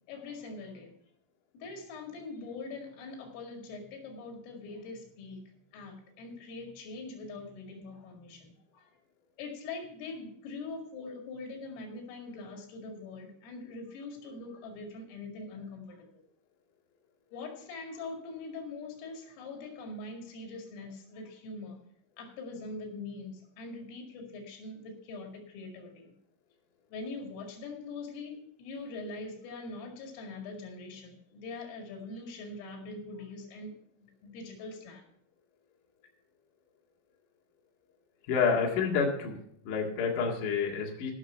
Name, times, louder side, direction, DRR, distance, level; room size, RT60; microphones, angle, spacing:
voice 1, 0.1-1.0 1.5-5.4 5.7-8.9 9.4-16.1 17.3-21.8 22.2-26.1 26.9-33.8 34.0-35.0, left 3 dB, 85° left, 2 dB, 4.8 m, -43 dB
voice 2, 38.3-39.4 39.6-41.1, left 5 dB, 55° left, -1 dB, 2.9 m, -28 dB
15.5 x 6.4 x 5.6 m, 0.67 s
omnidirectional pair, 5.7 m